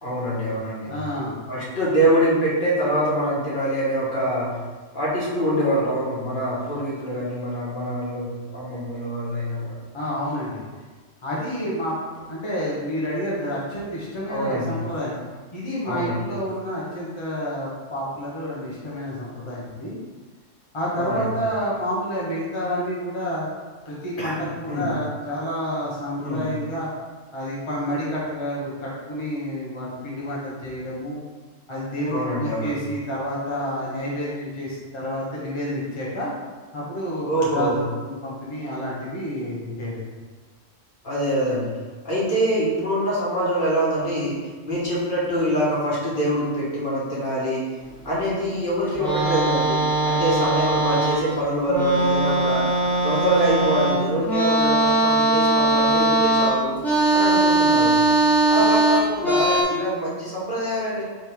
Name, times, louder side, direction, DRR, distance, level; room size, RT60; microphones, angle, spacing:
voice 1, 0.0-0.9 1.5-4.5 4.9-9.7 14.3-14.8 15.8-16.2 20.9-21.2 24.2-24.9 26.2-26.5 32.1-32.8 37.2-37.8 41.0-41.7 42.0-44.4 44.6-47.7 48.0-52.7 53.0-56.8 57.1-58.0 58.5-61.0, equal, 45° left, -7 dB, 1.3 m, -24 dB
voice 2, 0.8-1.3 9.9-10.6 11.2-15.2 15.5-19.9 20.7-23.5 23.9-26.9 27.3-31.2 31.7-36.3 36.7-40.0 58.6-58.7, equal, 30° left, -6 dB, 0.7 m, -29 dB
sound 1, 48.9-51.3 51.6-59.6, right 2 dB, ahead, 1.0 m, -20 dB
3.4 x 3.3 x 4.4 m, 1.4 s
omnidirectional pair, 1.3 m